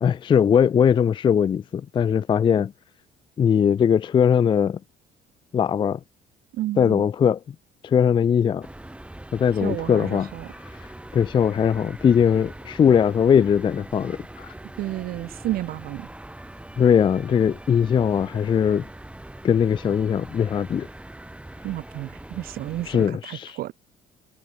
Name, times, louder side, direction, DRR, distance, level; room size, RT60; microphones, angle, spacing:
voice 1, 0.0-2.7 3.4-4.8 5.5-6.0 6.8-7.4 7.8-8.7 9.3-10.3 11.1-14.5 16.8-18.9 19.4-20.9 22.9-23.6, left 8 dB, 30° left, 0.4 m, -20 dB
voice 2, 6.5-7.1 9.6-10.5 14.8-16.1 21.6-23.7, right 15 dB, 60° right, 0.4 m, -31 dB
sound 1, 8.6-23.1, right 1 dB, 5° right, 6.1 m, -42 dB
cardioid pair, 110°, 17 cm